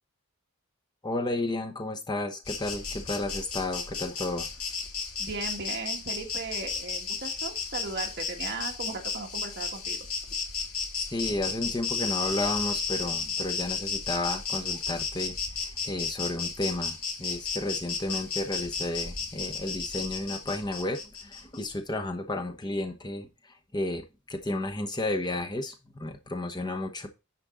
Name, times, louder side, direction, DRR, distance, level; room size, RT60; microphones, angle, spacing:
voice 1, 1.0-4.5 10.9-15.4 15.8-23.3 23.7-27.1, left 2 dB, 20° left, 0.9 m, -32 dB
Insect, 2.4-21.6, left 5 dB, 80° left, 2.1 m, -34 dB
voice 2, 5.2-10.0, right 3 dB, 50° right, 1.6 m, -37 dB
10.0 x 4.4 x 3.7 m
head